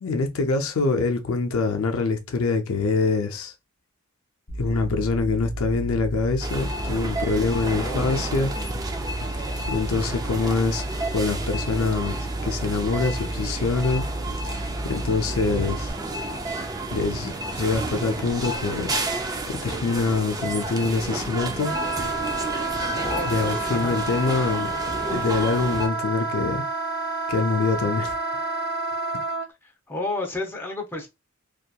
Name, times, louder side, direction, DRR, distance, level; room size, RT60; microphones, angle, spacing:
voice 1, 0.0-3.5 4.6-8.5 9.7-10.8 11.1-12.2 12.4-14.0 14.4-14.6 14.8-15.9 16.9-18.9 19.5-21.7 23.2-24.7 25.1-26.6 27.3-28.1, left 4 dB, 75° left, 0.5 m, -25 dB
sound 1, 4.5-15.9, right 1 dB, 45° left, 0.8 m, -33 dB
sound 2, 6.4-25.9, right 2 dB, 15° right, 0.3 m, -31 dB
voice 2, 7.7-8.3 22.9-24.0 29.6-31.1, left 2 dB, 10° left, 0.7 m, -32 dB
Wind instrument woodwind instrument, 21.6-29.4, right 3 dB, 55° right, 1.3 m, -29 dB
2.8 x 2.4 x 2.2 m
head